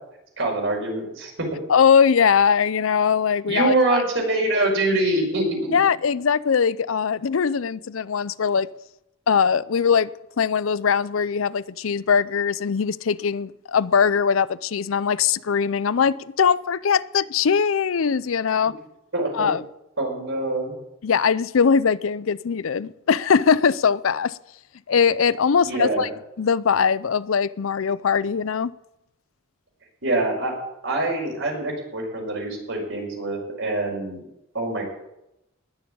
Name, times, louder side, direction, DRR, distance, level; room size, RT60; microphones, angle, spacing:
voice 1, 0.4-1.3 3.5-5.8 19.1-19.5 20.0-20.7 25.7-26.1 30.0-30.5 30.8-34.2 34.5-34.8, right 2 dB, 65° right, 5.3 m, -24 dB
voice 2, 1.7-4.0 5.7-8.7 9.3-10.1 10.4-18.7 19.3-19.6 21.0-24.4 24.9-26.1 26.4-28.7, left 6 dB, 80° left, 0.5 m, -21 dB
19.5 x 7.0 x 8.6 m
head